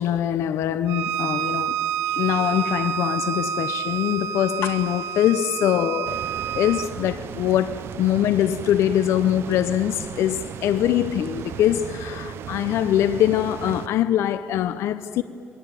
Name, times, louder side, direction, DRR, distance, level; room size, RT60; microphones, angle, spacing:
voice 1, 0.0-1.8 2.1-6.2 6.5-15.2, left 11 dB, 85° left, 0.7 m, -23 dB
Bowed string instrument, 0.9-6.9, right 9 dB, 90° right, 1.1 m, -28 dB
sound 1, 4.5-14.1, left 9 dB, 70° left, 1.5 m, -45 dB
sound 2, 6.0-13.9, right 10 dB, 60° right, 0.5 m, -36 dB
27.5 x 22.5 x 9.2 m
cardioid pair, 170°, 5 cm